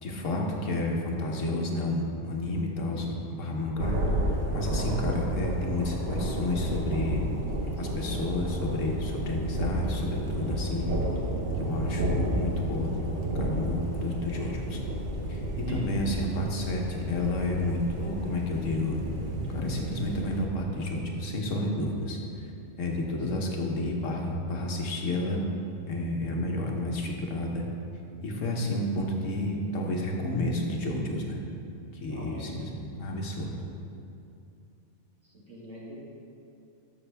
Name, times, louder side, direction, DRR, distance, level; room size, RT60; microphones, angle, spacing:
voice 1, 0.0-3.9 4.3-7.2 7.8-10.9 11.6-12.9 13.3-14.8 15.3-19.0 19.5-22.2 22.8-25.4 25.9-27.6 28.2-31.4 32.0-33.5, left 1 dB, 75° left, 0 dB, 1.4 m, -31 dB
voice 2, 2.8-3.2 7.7-8.4 10.5-11.0 15.7-16.1 23.1-23.8 32.1-32.6 35.2-36.0, equal, 80° right, -5 dB, 2.1 m, -45 dB
Thunder, 3.8-20.5, right 1 dB, 50° right, 1.1 m, -31 dB
12.5 x 6.0 x 3.4 m, 2.7 s
omnidirectional pair, 1.3 m